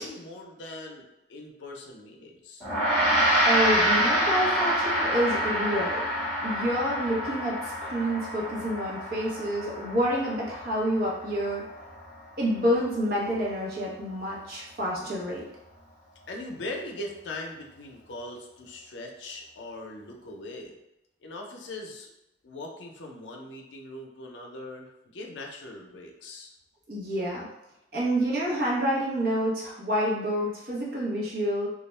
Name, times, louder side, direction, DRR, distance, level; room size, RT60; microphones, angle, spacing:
voice 1, 0.0-2.7 16.3-20.8 21.2-22.1 22.4-26.5, left 2 dB, 80° left, 1 dB, 0.5 m, -40 dB
Gong, 2.6-12.1, equal, 10° left, 1.0 m, -27 dB
voice 2, 3.4-6.0 6.4-11.6 12.4-15.4 26.9-27.5 27.9-31.7, equal, 50° right, -5 dB, 0.8 m, -28 dB
2.3 x 2.1 x 3.1 m, 0.89 s
head